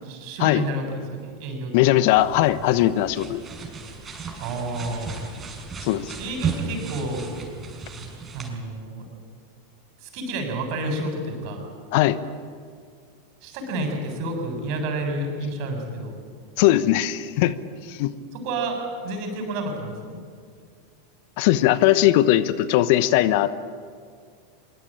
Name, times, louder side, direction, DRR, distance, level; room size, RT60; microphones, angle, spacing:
voice 1, 0.0-1.7 4.4-5.2 6.2-7.3 8.3-9.0 10.0-11.7 13.4-16.2 18.3-20.2, right 2 dB, 50° right, 4 dB, 7.4 m, -30 dB
voice 2, 1.7-3.4 5.8-6.2 11.9-12.2 16.6-17.6 17.9-18.1 21.4-23.6, left 14 dB, 55° left, 15 dB, 1.1 m, -19 dB
sound 1, 2.1-8.5, right 5 dB, 25° right, 6.4 m, -34 dB
25.0 x 23.5 x 8.9 m, 2.1 s
figure-of-eight pair, 90°, 0 cm